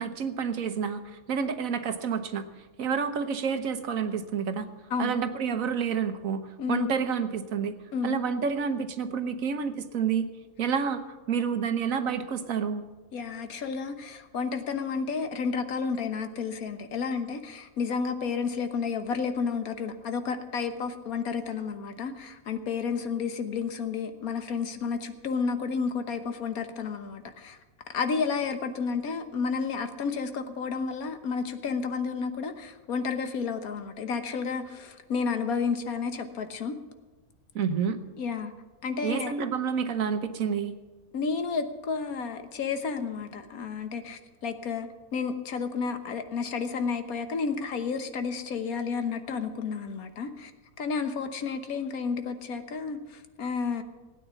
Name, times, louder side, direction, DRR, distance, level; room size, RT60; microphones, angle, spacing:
voice 1, 0.0-2.5 2.8-4.7 5.0-7.7 8.0-10.2 10.6-11.0 11.3-12.9 37.5-38.0 39.0-40.7, right 6 dB, 70° right, 9 dB, 1.4 m, -29 dB
voice 2, 6.6-6.9 7.9-8.2 13.1-27.6 27.9-36.8 38.2-38.5 38.8-39.3 41.1-50.5 50.8-53.8, left 5 dB, 75° left, 8 dB, 1.5 m, -31 dB
17.0 x 9.2 x 7.0 m, 1.2 s
omnidirectional pair, 1.5 m